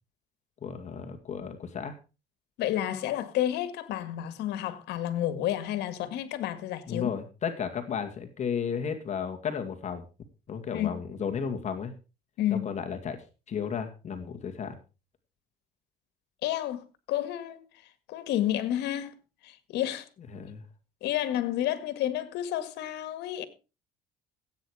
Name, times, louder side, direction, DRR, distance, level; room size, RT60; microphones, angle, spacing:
voice 1, 0.6-2.0 6.9-10.0 10.5-11.9 12.5-13.2 13.5-14.8 20.3-20.6, left 7 dB, 45° left, 2.1 m, -33 dB
voice 2, 2.6-7.1 10.7-10.9 12.4-12.7 16.4-17.6 18.1-19.2 19.4-20.1 21.0-23.4, left 12 dB, 85° left, 1.9 m, -30 dB
15.5 x 8.9 x 4.9 m
cardioid pair, 110°, 17 cm